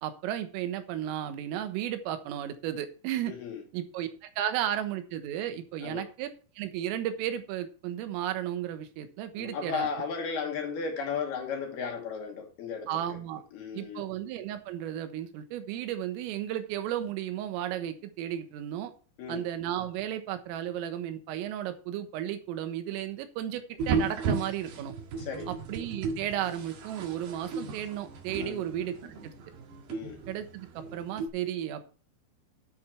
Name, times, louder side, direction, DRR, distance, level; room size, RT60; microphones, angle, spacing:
voice 1, 0.0-3.3 3.7-6.3 6.6-9.9 12.9-13.4 13.7-18.9 19.3-24.9 25.5-29.0 29.2-29.3 30.3-31.8, right 11 dB, 85° right, 3.9 m, -34 dB
voice 2, 3.3-3.6 5.8-6.1 9.4-13.0 13.5-14.0 19.2-19.4 25.2-25.5 28.4-28.6 29.9-30.2, left 6 dB, 65° left, 2.8 m, -35 dB
sound 1, 23.8-31.3, right 4 dB, 60° right, 3.3 m, -35 dB
11.0 x 7.9 x 4.4 m
omnidirectional pair, 5.7 m